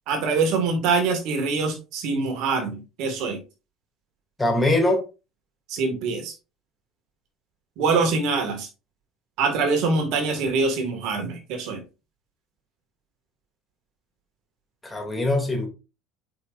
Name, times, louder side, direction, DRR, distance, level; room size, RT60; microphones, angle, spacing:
voice 1, 0.1-3.4 5.7-6.3 7.8-8.7 9.4-11.8, right 4 dB, 65° right, 5 dB, 2.0 m, -24 dB
voice 2, 4.4-5.0 14.8-15.7, left 1 dB, 15° left, 2 dB, 2.7 m, -22 dB
8.4 x 5.4 x 2.6 m, 0.30 s
hypercardioid pair, 75°, 0 cm